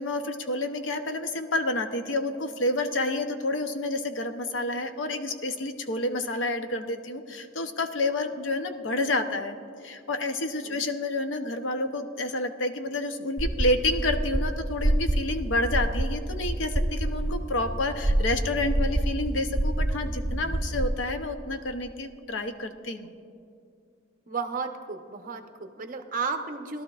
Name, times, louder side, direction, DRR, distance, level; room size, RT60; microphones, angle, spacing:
voice 1, 0.0-9.6 9.8-23.1, left 2 dB, 75° left, 7 dB, 0.7 m, -29 dB
sound 1, 13.4-20.9, right 1 dB, 15° right, 0.4 m, -27 dB
voice 2, 24.3-26.8, right 4 dB, 45° right, 5 dB, 0.7 m, -33 dB
20.5 x 12.0 x 2.4 m, 2.4 s
head